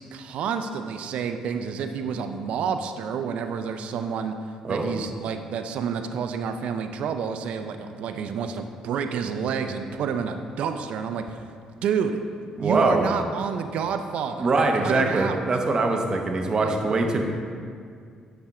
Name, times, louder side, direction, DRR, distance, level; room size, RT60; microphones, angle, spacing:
voice 1, 0.0-4.3 4.7-11.4 11.8-12.2 12.6-14.5 14.8-15.4 16.6-17.1, right 6 dB, 70° right, 7 dB, 0.4 m, -29 dB
voice 2, 12.6-13.0 14.4-17.2, right 3 dB, 40° right, 3 dB, 0.8 m, -23 dB
7.2 x 5.9 x 3.6 m, 2.2 s
cardioid pair, 85°, 2 cm